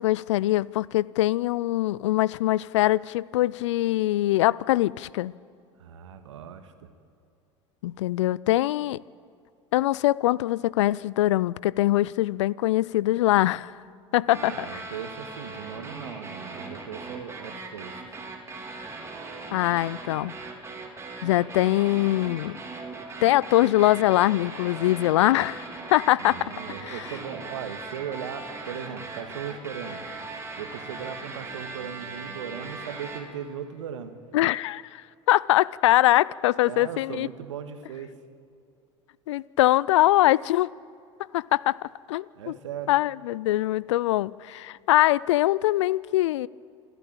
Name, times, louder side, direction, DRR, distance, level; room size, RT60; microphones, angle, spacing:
voice 1, 0.0-5.3 7.8-9.0 9.7-13.7 14.1-14.8 19.5-20.3 21.2-22.6 23.2-26.5 26.8-27.0 34.3-35.0 35.3-37.3 39.3-40.7 41.3-41.8 42.1-42.6 42.9-46.5, left 16 dB, 75° left, 0.4 m, -23 dB
voice 2, 5.8-6.9 14.4-17.9 26.2-30.1 30.6-34.2 36.7-38.1 42.4-42.9, right 8 dB, 80° right, 1.7 m, -38 dB
sound 1, 14.3-33.2, right 3 dB, 20° right, 3.6 m, -39 dB
28.0 x 11.0 x 8.9 m
hypercardioid pair, 80°, 15 cm